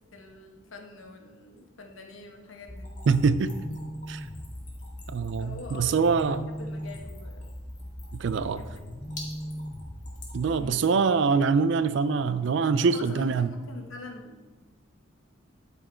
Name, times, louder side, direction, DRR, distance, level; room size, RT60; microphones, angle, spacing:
voice 1, 0.1-3.0 5.4-7.5 8.4-9.1 10.6-10.9 12.9-14.5, left 3 dB, 80° left, 3 dB, 1.1 m, -45 dB
sound 1, 2.7-10.7, equal, 15° left, 0.4 m, -39 dB
Splash splatter / Trickle dribble, 2.8-11.1, left 2 dB, 35° left, 1.8 m, -49 dB
voice 2, 3.1-3.5 4.1-4.3 5.1-6.5 8.1-8.6 10.3-13.5, right 5 dB, 65° right, 14 dB, 0.4 m, -24 dB
10.5 x 4.5 x 4.4 m, 1.3 s
head